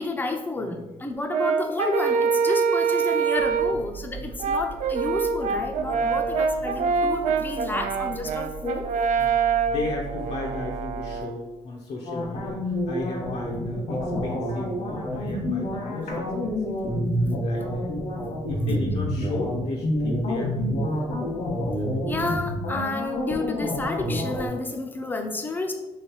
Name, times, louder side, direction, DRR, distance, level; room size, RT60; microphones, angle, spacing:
voice 1, 0.0-8.9 16.8-16.9 22.1-25.7, left 3 dB, 15° left, 5 dB, 0.5 m, -30 dB
voice 2, 0.6-1.0 3.7-3.8 4.2-4.3 9.2-17.9 18.5-21.0, left 3 dB, 60° left, -1 dB, 0.6 m, -35 dB
Brass instrument, 1.3-3.8 4.4-11.4, right 5 dB, 80° right, 0.4 m, -25 dB
sound 1, 3.4-11.2, right 6 dB, 45° right, 0.8 m, -40 dB
sound 2, 12.1-24.5, equal, 75° left, 1.3 m, -28 dB
3.2 x 3.2 x 4.5 m, 1.1 s
cardioid pair, 150°, 12 cm